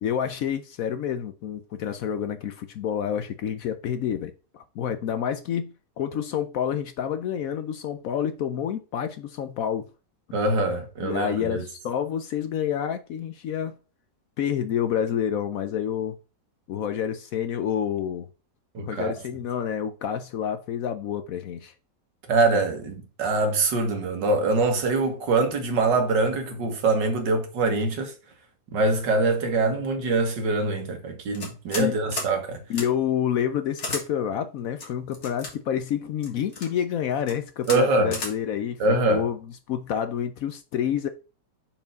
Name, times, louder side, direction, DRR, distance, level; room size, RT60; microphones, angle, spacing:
voice 1, 0.0-5.7 6.0-9.9 11.0-13.7 14.4-16.2 16.7-18.3 18.8-21.7 31.8-32.0 32.7-38.8 39.1-39.4 39.7-41.1, left 9 dB, 70° left, 0.9 m, -28 dB
voice 2, 10.3-11.7 18.7-19.1 22.3-28.1 28.7-32.6 37.7-38.2 38.8-39.3, right 3 dB, 85° right, 2.0 m, -24 dB
sound 1, 31.3-31.9 32.1-32.3 32.7-32.9 33.8-34.0 34.8-35.5 36.2-36.7 37.2-37.3 37.6-37.8 38.1-38.3, left 2 dB, 40° left, 1.9 m, -33 dB
5.5 x 4.7 x 5.1 m
omnidirectional pair, 1.9 m